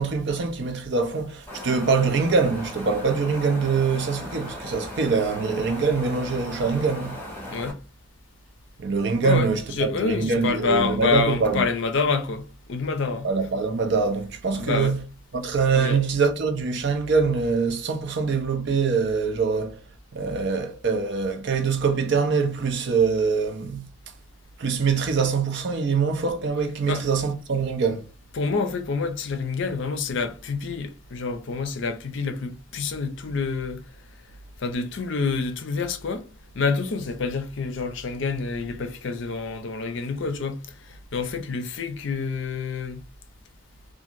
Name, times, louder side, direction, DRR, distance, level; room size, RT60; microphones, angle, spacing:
voice 1, 0.0-7.2 8.8-11.7 13.2-15.0 15.3-19.8 20.1-23.9 24.6-28.0, right 5 dB, 55° right, 0.5 m, -24 dB
Wind, 1.5-7.7, left 1 dB, 10° left, 0.7 m, -37 dB
voice 2, 9.8-13.3 14.6-15.0 15.7-16.0 26.9-27.0 28.3-33.8 34.6-36.2 36.5-40.6 40.9-43.0, left 4 dB, 60° left, 0.5 m, -27 dB
2.8 x 2.5 x 2.5 m
head